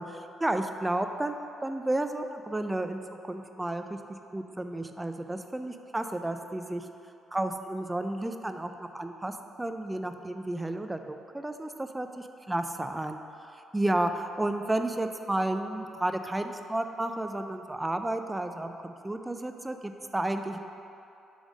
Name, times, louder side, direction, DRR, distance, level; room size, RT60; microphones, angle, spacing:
voice 1, 0.0-4.0 4.3-6.9 7.3-13.2 13.7-20.6, right 1 dB, 15° right, 7 dB, 0.4 m, -32 dB
7.3 x 3.4 x 5.2 m, 2.7 s
cardioid pair, 90°, 0 cm